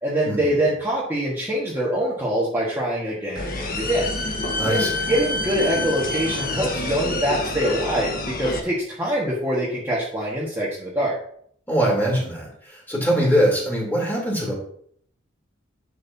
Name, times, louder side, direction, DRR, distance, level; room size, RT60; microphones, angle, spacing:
voice 1, 0.0-4.2 4.7-11.2, right 1 dB, 10° right, -6 dB, 1.7 m, -24 dB
sound 1, 3.4-8.6, left 2 dB, 45° left, 1.4 m, -27 dB
voice 2, 4.6-5.0 11.7-14.5, equal, 10° left, -3 dB, 3.4 m, -22 dB
11.0 x 6.6 x 2.8 m, 0.63 s
head